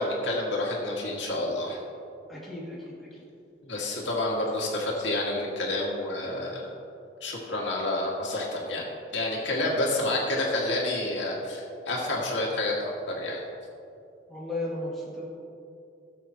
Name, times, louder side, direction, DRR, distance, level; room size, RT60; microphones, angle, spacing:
voice 1, 0.0-1.8 3.6-6.7 7.2-8.9 9.1-13.4, left 1 dB, 85° left, -3 dB, 2.0 m, -29 dB
voice 2, 2.3-3.2 9.9-10.1 10.4-10.5 14.3-15.3, left 1 dB, ahead, -9 dB, 2.5 m, -36 dB
18.0 x 7.1 x 3.0 m, 2.6 s
head